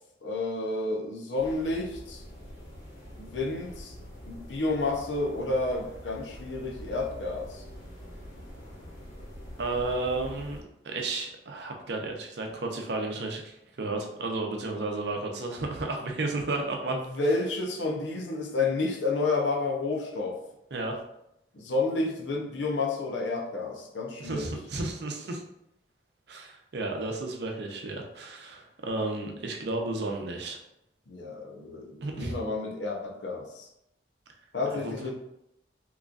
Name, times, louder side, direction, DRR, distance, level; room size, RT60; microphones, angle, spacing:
voice 1, 0.2-2.2 3.2-3.9 4.3-7.6 16.8-20.4 21.5-24.5 31.1-33.7 34.5-35.1, left 3 dB, 85° left, 0 dB, 0.7 m, -30 dB
sound 1, 1.4-10.6, equal, 60° left, 1.4 m, -45 dB
voice 2, 9.6-10.6 10.8-17.0 20.7-21.0 24.2-25.4 26.3-30.6 32.0-32.3 34.7-35.1, right 2 dB, 65° right, 2 dB, 0.6 m, -33 dB
3.7 x 3.0 x 2.4 m, 0.81 s
head